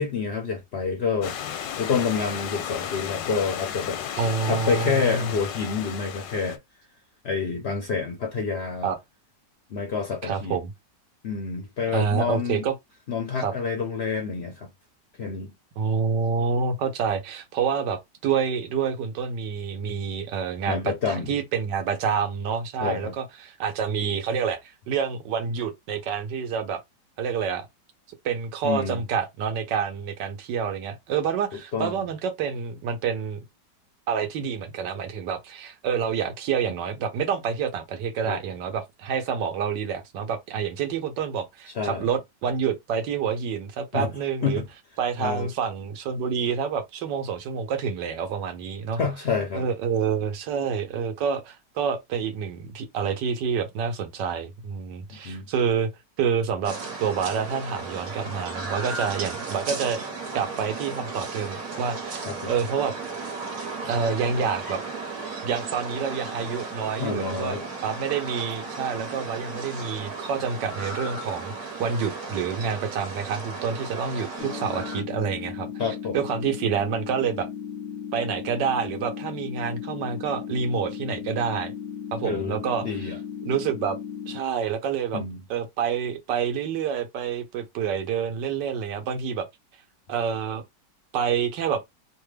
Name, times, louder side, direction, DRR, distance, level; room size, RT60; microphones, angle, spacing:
voice 1, 0.0-1.4 1.8-4.0 4.4-6.6 7.2-8.9 9.7-10.6 11.2-12.6 13.1-14.7 15.2-15.5 20.7-21.4 22.8-23.1 28.6-29.0 31.7-32.0 38.2-38.4 41.7-42.1 43.9-44.1 44.4-44.7 45.2-45.5 49.0-49.6 55.1-55.5 62.3-62.5 67.0-67.6 75.8-76.2 82.2-83.2 85.1-85.4, left 5 dB, 65° left, 0.6 m, -28 dB
Stream / Liquid, 1.2-6.6, left 9 dB, 85° left, 1.3 m, -33 dB
voice 2, 4.2-5.3 8.8-9.0 10.2-10.7 11.9-12.7 13.4-13.5 15.8-26.8 27.2-27.7 28.2-33.4 34.1-44.6 45.0-49.0 49.5-55.9 56.2-60.0 60.3-62.9 63.8-64.8 65.4-75.7 76.1-77.5 78.1-81.7 82.1-82.8 83.4-84.0 84.3-85.2 85.5-89.5 90.1-90.6 91.1-91.8, right 6 dB, 80° right, 1.4 m, -28 dB
sound 1, 56.6-75.0, right 3 dB, 55° right, 1.4 m, -35 dB
sound 2, 74.4-84.4, left 8 dB, 25° left, 0.6 m, -36 dB
3.3 x 2.2 x 3.2 m
omnidirectional pair, 2.0 m